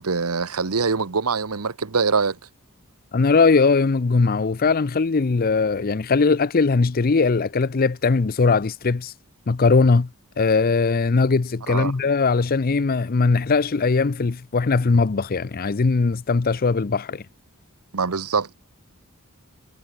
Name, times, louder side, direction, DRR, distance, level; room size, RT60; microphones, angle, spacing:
voice 1, 0.0-2.4 11.7-11.9 17.9-18.6, right 5 dB, 80° right, 1.1 m, -23 dB
voice 2, 3.1-9.1 9.5-10.1 10.4-17.2, left 4 dB, 40° left, 0.5 m, -20 dB
head